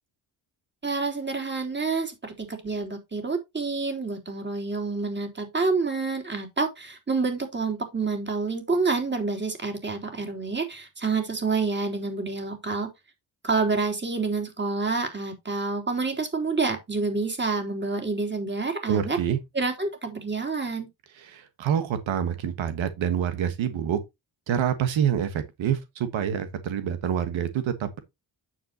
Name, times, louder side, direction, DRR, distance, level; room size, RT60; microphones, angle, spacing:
voice 1, 0.8-12.9 13.4-19.2 19.5-20.9, right 4 dB, 25° right, 3.5 m, -28 dB
voice 2, 18.9-19.4 21.2-24.0 24.5-28.0, right 9 dB, 90° right, 1.5 m, -27 dB
9.2 x 7.7 x 2.9 m
cardioid pair, 100°, 45 cm